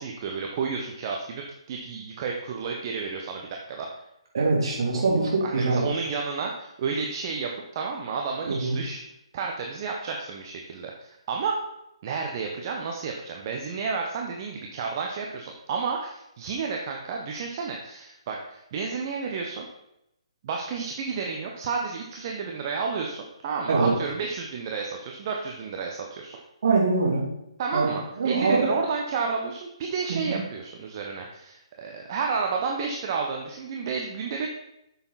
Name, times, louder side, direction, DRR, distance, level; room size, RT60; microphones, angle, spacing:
voice 1, 0.0-3.9 4.9-5.0 5.4-9.0 9.3-11.6 12.0-19.6 20.4-26.4 27.6-34.5, right 5 dB, 40° right, 1 dB, 1.1 m, -31 dB
voice 2, 4.3-5.8 8.5-8.8 23.7-23.9 26.6-27.2 27.7-28.7 30.1-30.4, right 3 dB, 55° right, -3 dB, 3.3 m, -23 dB
8.7 x 7.0 x 4.1 m, 0.84 s
figure-of-eight pair, 135°, 3 cm